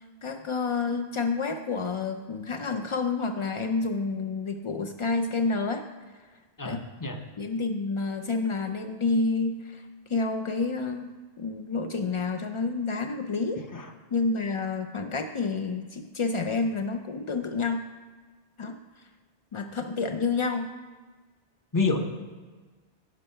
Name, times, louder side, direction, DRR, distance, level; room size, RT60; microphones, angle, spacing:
voice 1, 0.0-5.9 6.6-6.9 7.4-11.1 11.4-13.6 14.1-17.8 18.6-18.8 19.5-20.7, left 4 dB, 55° left, 6 dB, 0.3 m, -29 dB
voice 2, 6.6-7.2 13.7-13.9 21.7-22.0, left 3 dB, 20° left, 5 dB, 0.7 m, -27 dB
11.0 x 6.9 x 5.5 m, 1.4 s
omnidirectional pair, 1.1 m